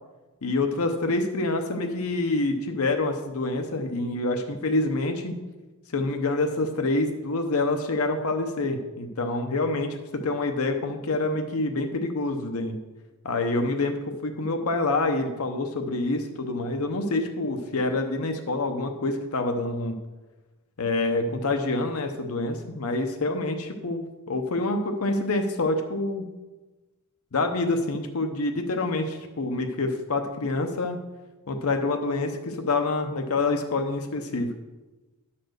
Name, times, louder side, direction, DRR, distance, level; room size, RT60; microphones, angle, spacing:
voice 1, 0.4-5.3 5.9-12.8 13.2-19.9 20.8-26.2 27.3-31.0 31.5-34.5, left 2 dB, 75° left, 5 dB, 0.7 m, -27 dB
10.5 x 4.2 x 6.5 m, 1.2 s
head